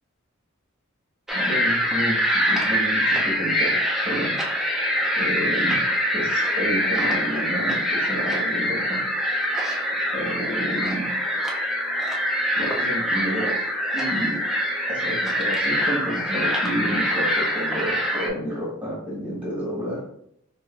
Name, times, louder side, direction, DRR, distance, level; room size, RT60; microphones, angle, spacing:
sound 1, 1.3-18.3, equal, ahead, 0.4 m, -24 dB
voice 1, 1.3-4.4 5.2-5.8 6.1-9.0 10.1-11.1 12.6-13.6 13.9-14.4 14.9-20.0, equal, 25° right, -5 dB, 1.1 m, -30 dB
4.5 x 2.4 x 2.3 m, 0.73 s
head